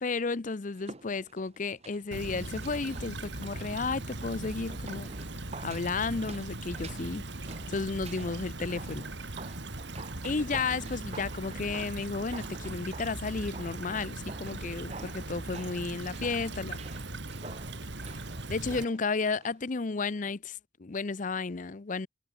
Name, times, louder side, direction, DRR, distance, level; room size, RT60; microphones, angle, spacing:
voice 1, 0.0-5.1 5.6-9.1 10.2-16.8 18.5-22.1, left 4 dB, 40° left, 0.6 m, -33 dB
sound 1, 0.7-19.6 19.9-20.0, right 3 dB, 35° right, 1.4 m, -49 dB
Stream / Trickle dribble, 2.1-18.8, right 2 dB, 60° right, 2.6 m, -39 dB
head